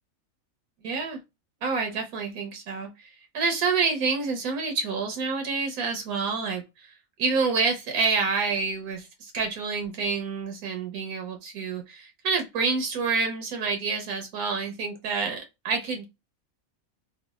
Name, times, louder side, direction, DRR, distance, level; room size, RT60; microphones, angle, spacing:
voice 1, 0.8-1.2 1.6-6.9 7.2-16.0, right 4 dB, 90° right, 1.3 m, -28 dB
3.2 x 2.2 x 2.2 m
omnidirectional pair, 1.5 m